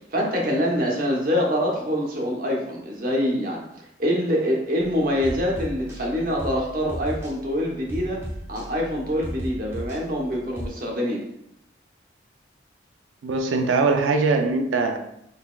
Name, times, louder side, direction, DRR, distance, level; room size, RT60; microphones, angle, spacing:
voice 1, 0.1-3.6 4.0-8.2 8.5-11.2, equal, 50° right, -1 dB, 0.9 m, -25 dB
sound 1, 4.8-10.7, equal, 15° right, 0.8 m, -36 dB
voice 2, 13.2-15.0, right 3 dB, 85° right, 5 dB, 0.4 m, -21 dB
4.0 x 3.4 x 2.3 m, 0.76 s
head